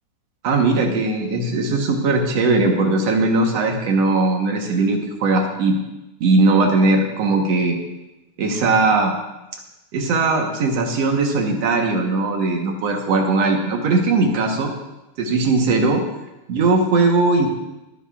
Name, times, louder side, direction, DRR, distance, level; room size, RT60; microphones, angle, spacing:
voice 1, 0.4-5.8 6.2-7.8 8.4-9.1 9.9-14.7 15.2-16.0 16.5-17.5, right 3 dB, 60° right, 2 dB, 2.1 m, -19 dB
24.5 x 9.9 x 2.4 m, 0.98 s
omnidirectional pair, 3.7 m